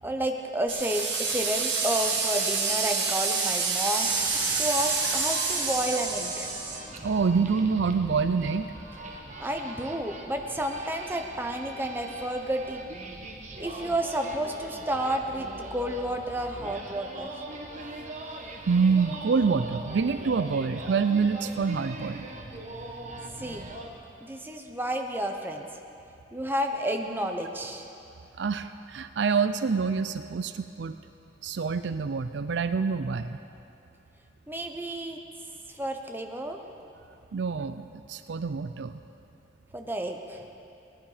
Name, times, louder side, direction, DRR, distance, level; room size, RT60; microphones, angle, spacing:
voice 1, 0.0-4.1 4.6-6.5 9.4-12.8 13.6-17.3 23.4-23.7 24.2-25.7 26.3-27.9 34.5-35.2 35.7-36.6 39.7-40.5, right 1 dB, 10° right, 3 dB, 0.9 m, -31 dB
sound 1, 0.7-6.8, right 4 dB, 90° right, 1.9 m, -28 dB
sound 2, 4.0-23.9, right 2 dB, 45° right, 1.3 m, -41 dB
voice 2, 7.0-8.7 18.7-22.3 28.4-31.0 31.4-33.4 37.3-39.0, right 5 dB, 70° right, 11 dB, 0.5 m, -26 dB
18.5 x 11.5 x 5.0 m, 2.7 s
head